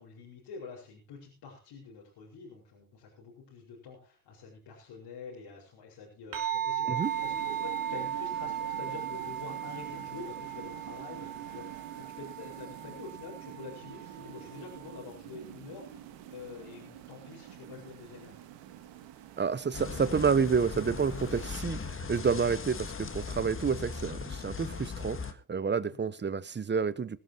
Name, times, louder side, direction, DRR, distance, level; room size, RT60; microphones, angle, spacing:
voice 1, 0.0-18.4 25.9-26.0, left 5 dB, 65° left, -4 dB, 5.1 m, -47 dB
sound 1, 6.3-15.0, right 10 dB, 45° right, 3.2 m, -37 dB
sound 2, 7.0-21.6, right 10 dB, 70° right, 1.8 m, -47 dB
voice 2, 19.4-27.2, right 5 dB, 25° right, 18 dB, 1.0 m, -29 dB
sound 3, 19.7-25.3, left 5 dB, 30° left, 1.7 m, -38 dB
21.0 x 13.0 x 3.0 m, 0.32 s
hypercardioid pair, 55°, 44 cm